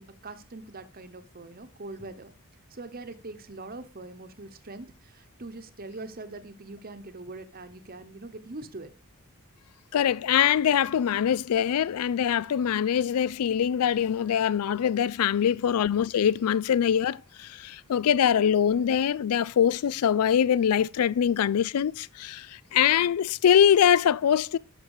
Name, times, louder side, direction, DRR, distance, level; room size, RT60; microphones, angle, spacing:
voice 1, 0.0-2.3 2.7-8.9, right 2 dB, 40° right, 1.0 m, -42 dB
voice 2, 9.9-24.6, left 9 dB, 90° left, 0.4 m, -23 dB
11.5 x 6.0 x 4.8 m
head